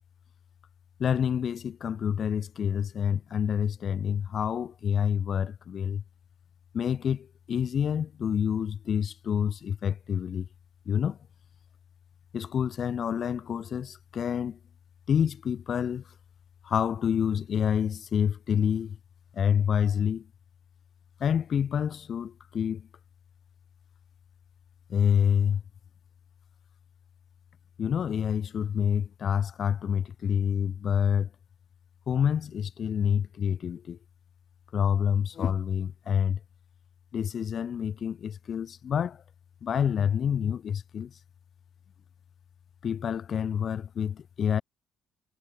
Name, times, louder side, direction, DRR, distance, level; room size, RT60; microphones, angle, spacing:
voice 1, 1.0-6.0 6.7-10.5 10.9-11.2 12.3-14.6 15.1-16.0 16.6-19.0 19.3-20.3 21.2-22.9 24.9-25.6 27.8-31.3 32.1-34.0 34.7-36.4 37.1-39.2 39.6-41.1 42.8-44.6, left 8 dB, 50° left, 0.4 m, -27 dB
cardioid pair, 105°, 0 cm